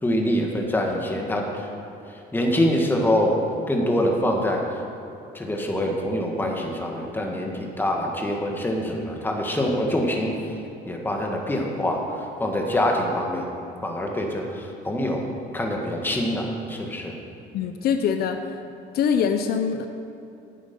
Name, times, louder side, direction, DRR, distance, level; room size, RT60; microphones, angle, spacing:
voice 1, 0.0-1.7 2.3-3.4 3.7-4.6 5.3-10.3 10.9-12.0 12.4-13.4 13.8-14.4 14.8-15.2 15.5-17.1, left 1 dB, 10° left, 0 dB, 1.7 m, -24 dB
voice 2, 17.5-18.5 18.9-19.9, left 7 dB, 65° left, 7 dB, 0.7 m, -23 dB
11.5 x 8.9 x 5.4 m, 2.8 s
cardioid pair, 110°, 17 cm